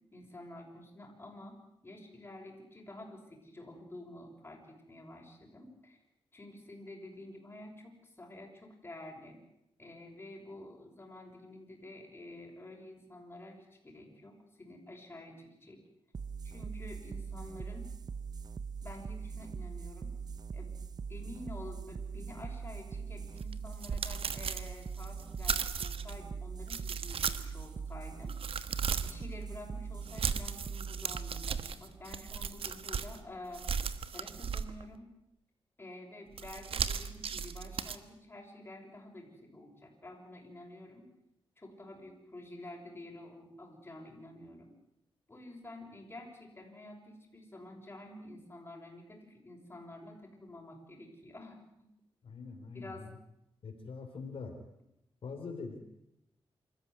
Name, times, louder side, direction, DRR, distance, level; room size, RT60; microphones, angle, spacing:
voice 1, 0.1-1.6 1.8-6.0 6.3-9.4 9.8-15.8 16.5-17.9 18.8-20.1 20.5-20.8 21.1-28.3 29.0-33.6 34.1-35.1 35.8-41.1 41.6-44.7 45.3-51.9 52.7-53.1, left 1 dB, 25° left, 0 dB, 6.4 m, -49 dB
sound 1, 16.1-33.2, right 5 dB, 45° right, 0.9 m, -42 dB
sound 2, 23.4-26.2 26.6-27.6 28.1-29.2 30.0-33.2 33.5-35.0 36.3-38.0, right 6 dB, 75° right, 1.2 m, -36 dB
voice 2, 52.2-53.1 53.6-54.5 55.2-55.8, left 4 dB, 70° left, 2 dB, 3.7 m, -43 dB
26.5 x 14.0 x 9.8 m, 0.83 s
wide cardioid pair, 105°, 10 cm